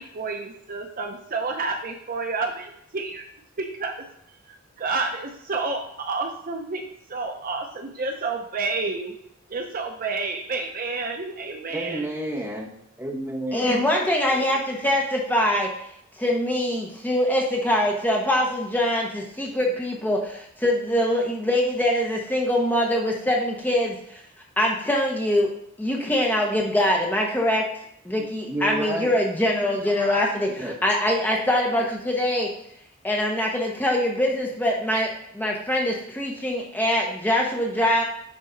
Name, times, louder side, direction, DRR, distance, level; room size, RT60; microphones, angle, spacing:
voice 1, 0.0-3.2 3.6-4.0 4.5-9.1 9.5-12.0, right 3 dB, 40° right, 3 dB, 0.7 m, -30 dB
voice 2, 11.7-12.7 13.0-13.8 28.2-29.1 30.5-30.7, right 1 dB, 10° right, -2 dB, 1.4 m, -31 dB
voice 3, 13.5-15.7 16.2-24.2 24.6-25.5 25.8-27.6 28.0-32.5 33.0-38.0, left 1 dB, 10° left, -1 dB, 0.9 m, -23 dB
9.7 x 4.0 x 3.9 m, 0.72 s
head